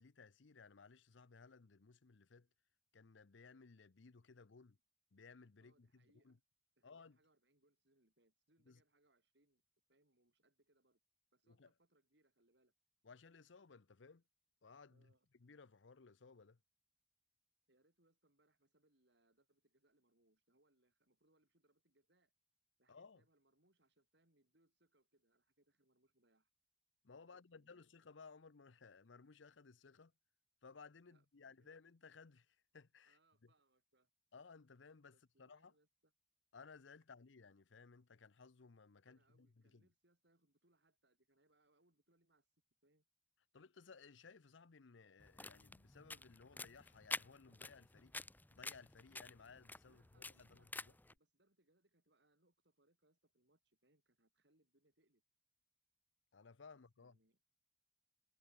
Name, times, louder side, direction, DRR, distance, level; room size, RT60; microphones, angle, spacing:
voice 1, 0.0-2.5 2.9-4.8 5.1-6.4 6.8-7.2 8.6-8.8 11.5-11.7 13.0-14.2 14.6-16.6 22.9-23.2 27.0-30.1 30.6-33.5 34.3-35.7 36.5-39.9 43.5-48.1 48.5-50.9 56.3-57.2, left 4 dB, 75° left, 0.7 m, -60 dB
voice 2, 5.6-6.4 6.8-9.6 9.9-11.0 11.3-12.7 14.9-15.3 17.7-22.3 22.8-26.5 27.2-27.8 31.1-31.7 33.1-34.1 35.1-36.1 39.0-42.5 42.8-43.1 49.9-55.2 56.7-57.4, right 1 dB, 60° right, 5.4 m, -78 dB
sound 1, 45.2-51.1, left 3 dB, 10° left, 0.7 m, -49 dB
head